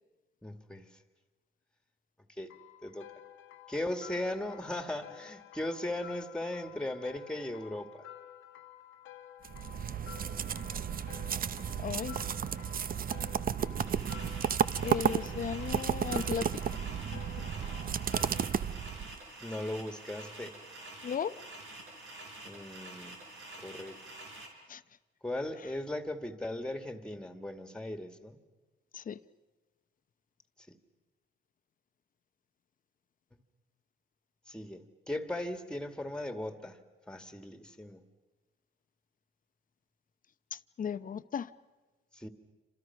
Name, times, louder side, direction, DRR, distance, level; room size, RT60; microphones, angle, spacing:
voice 1, 0.4-1.0 2.4-2.5 2.8-3.1 3.7-8.0 19.4-20.6 22.4-23.1 23.6-24.0 25.2-28.4 30.7-30.8 34.5-36.8 37.1-38.1 42.1-42.3, left 1 dB, 5° left, 7 dB, 2.2 m, -38 dB
sound 1, 2.5-18.6, left 12 dB, 90° left, 1.4 m, -52 dB
sound 2, 9.4-19.2, right 8 dB, 45° right, 0.7 m, -33 dB
voice 2, 11.8-12.2 14.8-16.6 17.1-17.5 21.0-21.3 24.7-24.8 28.9-29.2 40.5-41.5, left 7 dB, 45° left, 14 dB, 0.8 m, -36 dB
sound 3, 13.8-24.5, right 2 dB, 85° right, 5.2 m, -48 dB
29.0 x 26.5 x 6.0 m, 1.2 s
cardioid pair, 90°, 20 cm